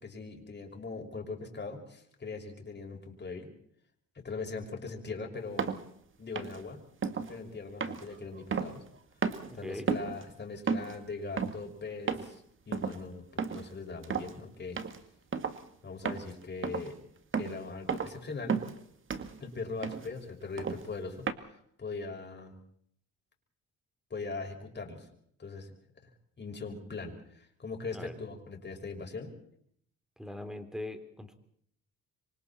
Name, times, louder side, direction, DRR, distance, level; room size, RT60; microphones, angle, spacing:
voice 1, 0.0-3.5 4.1-5.7 6.2-6.8 7.3-8.8 9.6-14.8 15.8-17.0 17.4-18.6 19.4-22.6 24.1-25.1 25.4-25.7 26.4-29.3, left 4 dB, 35° left, 2 dB, 6.0 m, -40 dB
sound 1, 5.6-5.8 6.4-6.6 7.0-7.3 7.8-9.0 9.2-9.5 9.9-10.2 10.7-11.0 11.4-11.6 12.1-12.4 12.7-13.0 13.4-13.7 14.0-14.3 14.8-15.0 15.3-15.6 16.1-16.3 16.6-16.9 17.3-17.6 17.9-18.2 18.5-18.8 19.1-19.4 19.8-20.1 20.6-20.9 21.3-21.4, right 6 dB, 40° right, 1.9 m, -33 dB
voice 2, 9.5-9.9 27.9-28.1 30.2-31.3, left 1 dB, ahead, 8 dB, 3.4 m, -41 dB
26.5 x 24.5 x 4.3 m, 0.66 s
cardioid pair, 90°, 30 cm